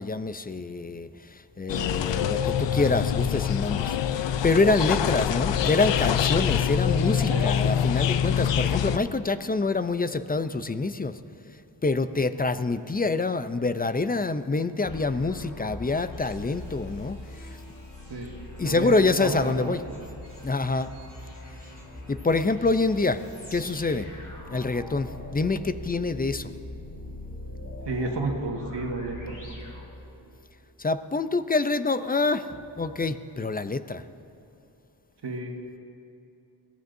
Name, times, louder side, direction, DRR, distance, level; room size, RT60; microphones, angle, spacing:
voice 1, 0.0-11.1 11.8-17.2 18.6-19.8 20.4-20.9 22.1-23.2 23.5-24.1 24.5-26.5 30.8-34.0, left 3 dB, 20° left, 12 dB, 0.5 m, -26 dB
sound 1, 1.7-9.0, left 9 dB, 85° left, 0.5 m, -25 dB
sound 2, 14.8-30.5, left 1 dB, 45° left, 3.3 m, -42 dB
voice 2, 18.6-19.7 27.8-29.5 35.2-35.5, right 2 dB, 70° right, 1 dB, 1.7 m, -31 dB
22.5 x 15.0 x 2.7 m, 2.8 s
wide cardioid pair, 80°, 42 cm